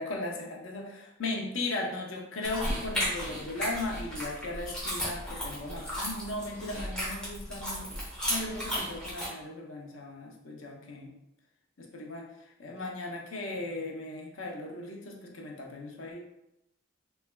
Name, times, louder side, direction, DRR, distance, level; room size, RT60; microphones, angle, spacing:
voice 1, 0.0-7.9 8.3-11.1 11.8-12.3 12.6-16.2, left 2 dB, 85° left, 0 dB, 0.7 m, -37 dB
sound 1, 2.4-9.3, equal, 5° left, 0.9 m, -34 dB
3.4 x 3.2 x 2.2 m, 0.87 s
head